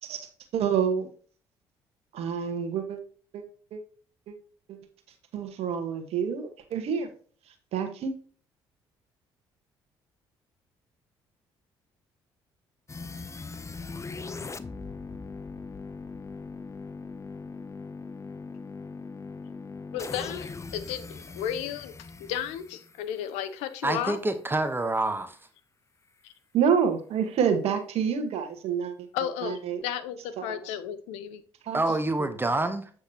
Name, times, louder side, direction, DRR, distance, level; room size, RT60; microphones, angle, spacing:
voice 1, 0.0-1.1 2.1-3.0 3.3-3.4 3.7-3.8 4.3-4.4 4.7-4.8 5.3-7.1 7.7-8.1 26.5-29.1 29.4-29.8 30.4-30.6 31.6-31.8, right 7 dB, 70° right, 1.4 m, -28 dB
sound 1, 12.9-23.8, left 4 dB, 25° left, 0.7 m, -40 dB
voice 2, 19.9-21.9 22.2-24.2 26.2-26.3 29.1-31.4, left 10 dB, 80° left, 0.8 m, -33 dB
voice 3, 23.8-25.5 31.7-32.9, right 2 dB, 20° right, 1.0 m, -27 dB
7.8 x 6.2 x 2.9 m
hypercardioid pair, 55°, 11 cm